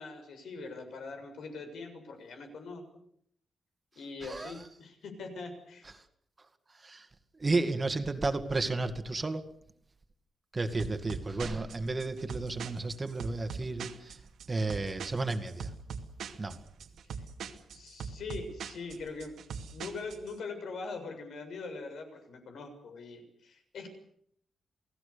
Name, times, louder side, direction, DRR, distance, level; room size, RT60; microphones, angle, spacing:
voice 1, 0.0-2.8 4.0-5.9 17.7-19.4 19.7-23.9, left 3 dB, 80° left, 6 dB, 7.0 m, -42 dB
voice 2, 4.2-4.5 6.8-7.1 7.4-9.4 10.5-14.2 14.5-15.7 16.4-16.6, right 3 dB, 25° right, 7 dB, 2.1 m, -32 dB
sound 1, 10.8-20.3, right 6 dB, 85° right, 2.4 m, -42 dB
29.5 x 18.0 x 6.9 m, 0.67 s
wide cardioid pair, 150°, 0 cm